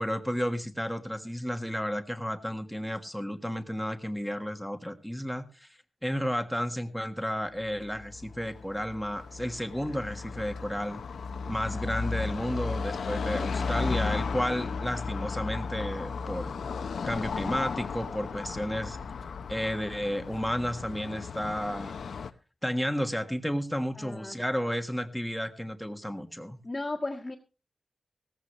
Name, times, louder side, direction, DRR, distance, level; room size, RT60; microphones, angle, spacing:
voice 1, 0.0-5.7 6.0-11.0 11.5-16.5 17.0-19.0 19.5-21.9 22.6-26.6, equal, ahead, 7 dB, 1.5 m, -32 dB
Car passing by / Traffic noise roadway noise, 7.6-22.3, left 5 dB, 80° left, 0.8 m, -35 dB
voice 2, 13.5-14.1 23.9-24.4 26.6-27.3, left 2 dB, 20° left, -5 dB, 1.6 m, -36 dB
17.5 x 14.5 x 3.2 m, 0.32 s
wide cardioid pair, 125°, 0 cm